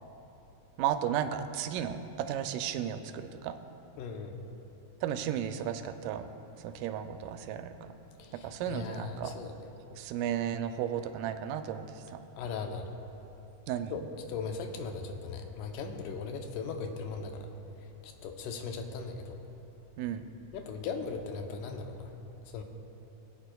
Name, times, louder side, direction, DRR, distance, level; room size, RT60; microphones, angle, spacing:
voice 1, 0.8-3.5 5.0-6.3 6.6-7.7 8.4-9.4 9.9-12.2 13.7-14.1 20.0-20.2, right 9 dB, 85° right, 8 dB, 2.1 m, -34 dB
voice 2, 4.0-4.3 8.2-9.5 12.4-12.9 13.9-14.0 14.3-17.5 18.0-19.4 20.5-22.1 22.5-22.6, left 5 dB, 85° left, 4 dB, 2.3 m, -38 dB
20.5 x 8.8 x 2.2 m, 2.9 s
omnidirectional pair, 3.7 m